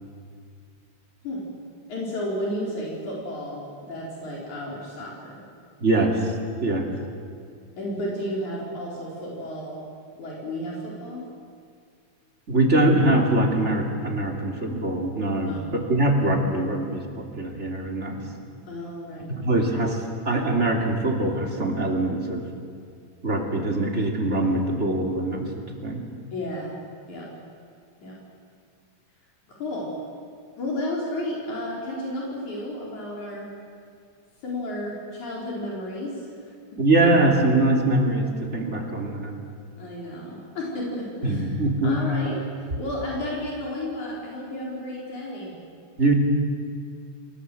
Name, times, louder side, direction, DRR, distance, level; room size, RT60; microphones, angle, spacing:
voice 1, 1.9-5.4 7.8-9.9 10.2-11.3 15.4-15.7 18.7-19.4 26.3-26.8 27.1-27.3 28.0-28.1 29.5-30.0 30.6-33.5 34.4-36.5 39.8-41.4 41.8-45.6, left 1 dB, 75° left, -4 dB, 5.4 m, -32 dB
voice 2, 5.8-6.3 6.6-6.9 12.5-15.6 15.9-18.2 19.4-22.5 23.2-26.0 36.8-39.4 41.2-42.0 46.0-46.1, right 2 dB, 25° right, 1 dB, 2.7 m, -23 dB
28.0 x 19.5 x 7.8 m, 2.3 s
omnidirectional pair, 3.4 m